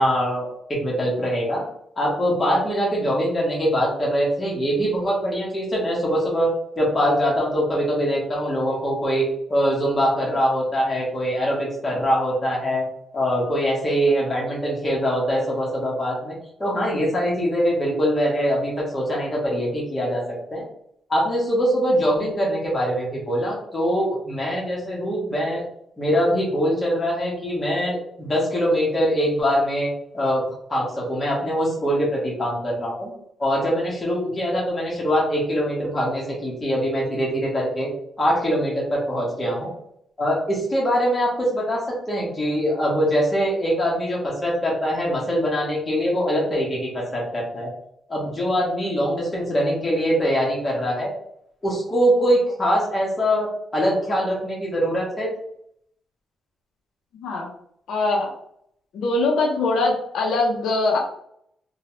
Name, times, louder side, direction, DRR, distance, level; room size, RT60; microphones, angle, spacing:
voice 1, 0.0-1.7 2.0-12.8 13.1-20.2 20.5-20.7 21.1-25.6 26.0-33.1 33.4-37.9 38.2-39.7 40.2-41.8 42.1-47.7 48.1-51.1 51.6-53.5 53.7-55.3, equal, 20° left, -4 dB, 1.1 m, -23 dB
voice 2, 57.9-58.3 58.9-61.0, left 2 dB, 90° left, -1 dB, 0.7 m, -22 dB
2.9 x 2.3 x 3.0 m, 0.70 s
wide cardioid pair, 165°, 0 cm